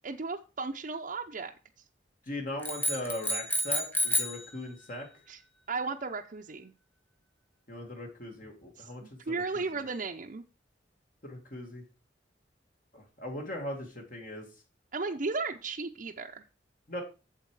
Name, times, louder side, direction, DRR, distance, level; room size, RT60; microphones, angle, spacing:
voice 1, 0.0-1.5 5.3-5.4 5.7-6.7 8.8-10.4 14.9-16.4, right 4 dB, 45° right, 2 dB, 0.7 m, -35 dB
voice 2, 2.3-5.1 7.7-9.2 9.5-9.8 11.2-11.8 12.9-14.5 16.9-17.0, left 1 dB, 50° left, 1 dB, 2.1 m, -39 dB
sound 1, 2.6-4.5, left 1 dB, 10° left, 1.6 m, -30 dB
8.3 x 7.4 x 4.8 m, 0.32 s
head